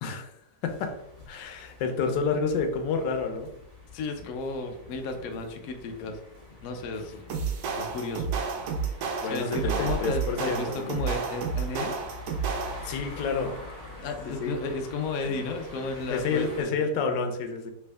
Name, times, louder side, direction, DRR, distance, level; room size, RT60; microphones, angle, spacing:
voice 1, 0.0-0.3 0.6-1.0 1.3-3.5 9.2-11.0 12.8-13.6 14.4-14.6 16.1-17.7, left 4 dB, 90° left, 6 dB, 1.2 m, -29 dB
sound 1, 0.7-16.6, left 2 dB, 30° left, 0.8 m, -46 dB
voice 2, 3.9-6.2 6.6-7.2 7.8-8.3 9.2-12.0 14.0-16.7, left 3 dB, 70° left, 4 dB, 0.9 m, -33 dB
sound 2, 4.2-17.1, left 2 dB, 25° right, 1.0 m, -53 dB
sound 3, 7.3-13.0, right 5 dB, 70° right, 1.1 m, -31 dB
3.4 x 2.7 x 3.3 m, 0.75 s
omnidirectional pair, 1.8 m